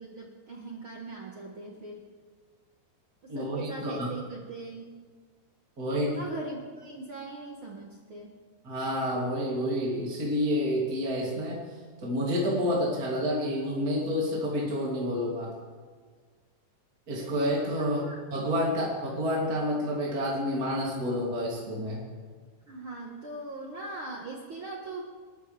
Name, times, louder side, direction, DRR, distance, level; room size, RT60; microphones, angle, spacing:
voice 1, 0.0-2.0 3.3-4.9 5.8-8.3 17.8-18.2 22.7-25.0, right 2 dB, 70° right, -1 dB, 1.2 m, -40 dB
voice 2, 3.3-4.1 5.8-6.1 8.6-11.6 12.0-15.5 17.1-18.0 18.3-22.1, equal, 25° right, -5 dB, 2.8 m, -29 dB
29.5 x 13.0 x 3.4 m, 1.6 s
omnidirectional pair, 4.7 m